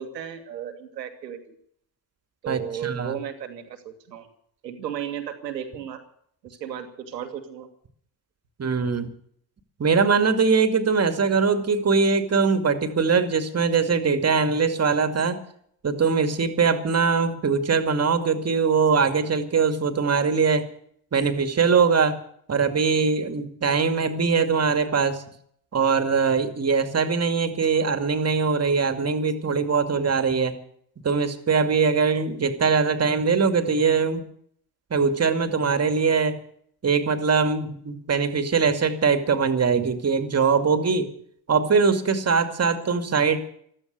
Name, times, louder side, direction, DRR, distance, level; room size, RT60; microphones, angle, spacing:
voice 1, 0.0-1.5 2.4-4.3 4.6-6.0 6.4-7.7, right 9 dB, 85° right, 7 dB, 2.0 m, -34 dB
voice 2, 2.5-3.1 8.6-9.1 9.8-15.4 15.8-20.7 21.1-22.2 22.5-25.2 25.7-30.5 31.0-34.2 34.9-36.4 36.8-41.1 41.5-43.4, right 5 dB, 30° right, 8 dB, 2.4 m, -22 dB
14.5 x 13.5 x 6.7 m, 0.64 s
hypercardioid pair, 60°, 49 cm